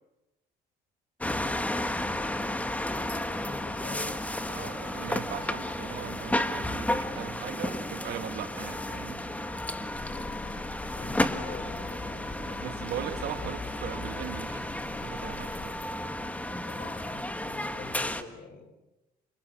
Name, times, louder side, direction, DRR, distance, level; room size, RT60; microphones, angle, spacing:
sound 1, 1.2-18.2, left 1 dB, 10° left, 1.6 m, -33 dB
voice 1, 2.2-4.3 10.2-12.7 16.7-18.7, left 3 dB, 60° left, 7 dB, 7.3 m, -47 dB
voice 2, 4.5-9.3 12.6-14.7 14.9-15.8, right 11 dB, 70° right, 8 dB, 1.8 m, -39 dB
sound 2, 9.9-15.7, left 4 dB, 45° left, 2.7 m, -45 dB
28.0 x 26.5 x 6.2 m, 0.99 s
cardioid pair, 110°, 17 cm